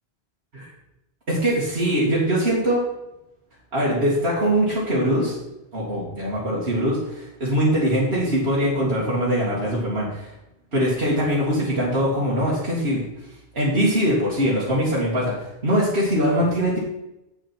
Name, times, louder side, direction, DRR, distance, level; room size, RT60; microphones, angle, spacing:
voice 1, 1.3-2.8 3.7-5.4 5.7-10.3 10.7-13.0 13.5-16.8, equal, 70° right, -7 dB, 2.5 m, -22 dB
9.0 x 8.2 x 4.5 m, 0.90 s
omnidirectional pair, 1.1 m